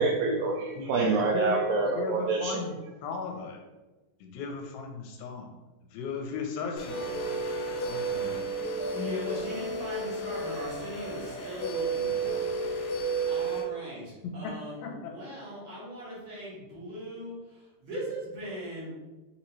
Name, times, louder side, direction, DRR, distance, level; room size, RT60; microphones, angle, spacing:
voice 1, 0.0-2.6, right 3 dB, 80° right, 0 dB, 2.2 m, -26 dB
voice 2, 2.0-3.6 4.2-5.5 5.9-7.4 7.7-8.4 14.2-14.5 14.8-15.1, left 5 dB, 90° left, 2 dB, 2.4 m, -37 dB
sound 1, 6.8-13.6, right 3 dB, 75° left, 1.9 m, -32 dB
voice 3, 8.9-18.9, equal, 55° right, -9 dB, 1.6 m, -40 dB
5.8 x 3.0 x 2.9 m, 1.1 s
omnidirectional pair, 4.2 m